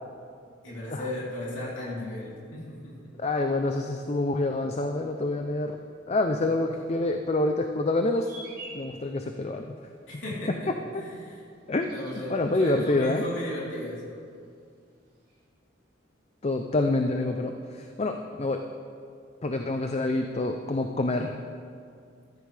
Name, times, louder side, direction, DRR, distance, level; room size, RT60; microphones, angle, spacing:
voice 1, 0.6-3.0 6.4-6.5 10.1-11.5 11.9-14.2, left 1 dB, 70° left, -7 dB, 3.6 m, -36 dB
voice 2, 3.2-5.8 6.1-8.3 8.7-9.7 10.1-10.2 10.9-11.0 11.7-11.9 12.3-13.2 16.4-18.6 19.4-21.4, left 2 dB, 30° left, 5 dB, 0.5 m, -27 dB
sound 1, 8.3-8.9 11.7-13.5 13.7-14.4 15.3-15.4, right 2 dB, 45° right, 2.9 m, -47 dB
15.0 x 13.0 x 3.4 m, 2.3 s
head